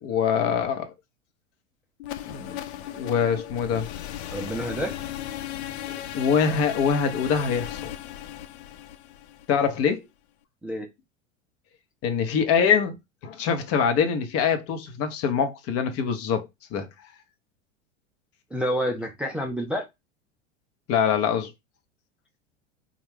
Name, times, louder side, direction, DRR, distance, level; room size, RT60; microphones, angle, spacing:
voice 1, 0.0-0.9 2.2-2.6 2.9-3.9 5.9-7.8 9.5-10.0 12.0-13.0 13.2-16.9 20.9-21.5, left 7 dB, 40° left, 0.8 m, -24 dB
sound 1, 2.0-9.9, left 12 dB, 65° left, 0.5 m, -36 dB
voice 2, 4.3-4.9 10.6-10.9 18.5-19.8, equal, 5° right, 0.4 m, -28 dB
3.5 x 2.3 x 3.4 m
hypercardioid pair, 85°, 36 cm